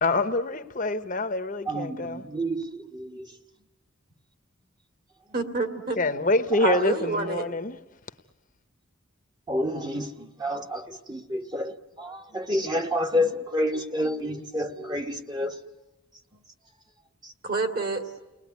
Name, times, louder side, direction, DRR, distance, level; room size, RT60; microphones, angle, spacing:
voice 1, 0.0-2.3 6.0-7.8, left 2 dB, 35° left, 1.0 m, -26 dB
voice 2, 1.7-3.3 6.7-6.8 9.5-15.5, equal, 20° right, 1.3 m, -29 dB
voice 3, 5.3-6.0 6.6-7.5 17.4-18.0, right 3 dB, 45° right, 2.6 m, -28 dB
30.0 x 20.0 x 9.5 m
head